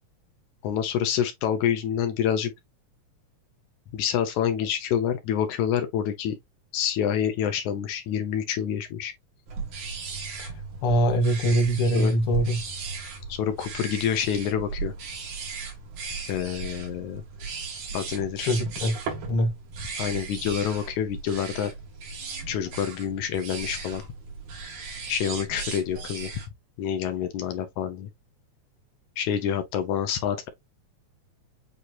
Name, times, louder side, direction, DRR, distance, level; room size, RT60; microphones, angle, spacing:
voice 1, 0.6-2.5 3.9-6.4 6.7-9.1 11.9-12.1 13.3-14.9 16.3-17.2 17.9-18.5 20.0-21.7 22.5-24.0 25.1-26.3 26.8-28.1 29.2-30.5, left 9 dB, 80° left, 2.2 m, -27 dB
sound 1, 9.5-26.5, right 4 dB, 85° right, 3.3 m, -36 dB
voice 2, 10.8-12.6 18.5-18.9 19.3-19.5, equal, 55° left, 1.9 m, -23 dB
8.0 x 2.8 x 2.4 m
omnidirectional pair, 3.4 m